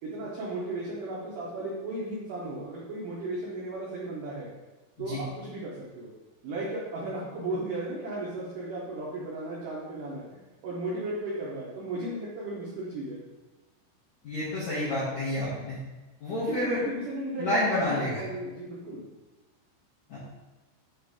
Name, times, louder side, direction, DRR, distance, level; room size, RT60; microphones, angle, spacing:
voice 1, 0.0-4.5 5.0-6.1 6.4-10.3 10.6-13.2 16.5-19.0, right 2 dB, 80° right, -6 dB, 1.8 m, -35 dB
voice 2, 14.2-15.8 16.2-16.8 17.4-18.2 20.1-20.2, left 1 dB, 65° left, -10 dB, 1.8 m, -29 dB
8.7 x 3.2 x 4.7 m, 1.1 s
omnidirectional pair, 5.5 m